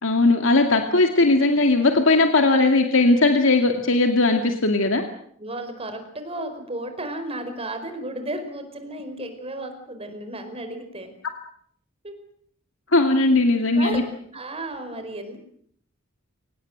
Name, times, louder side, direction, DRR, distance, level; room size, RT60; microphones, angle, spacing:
voice 1, 0.0-5.0 12.9-14.0, left 2 dB, 65° left, 5 dB, 2.3 m, -18 dB
voice 2, 5.4-11.1 12.0-12.1 13.7-15.4, right 1 dB, 30° right, 7 dB, 4.8 m, -33 dB
25.0 x 18.5 x 7.9 m, 0.64 s
head